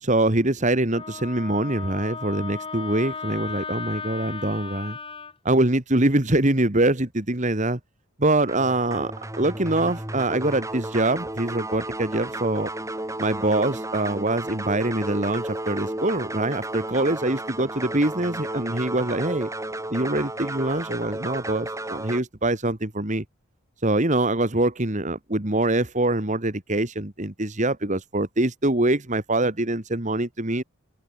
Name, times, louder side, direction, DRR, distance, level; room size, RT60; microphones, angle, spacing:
voice 1, 0.0-5.0 5.5-7.8 8.2-12.7 13.2-19.5 19.9-23.2 23.8-30.6, right 2 dB, 35° right, 1.8 m, -24 dB
Wind instrument woodwind instrument, 0.9-5.3, left 4 dB, 25° left, 4.0 m, -36 dB
sound 1, 8.5-22.2, right 1 dB, 15° right, 2.8 m, -33 dB
open air
head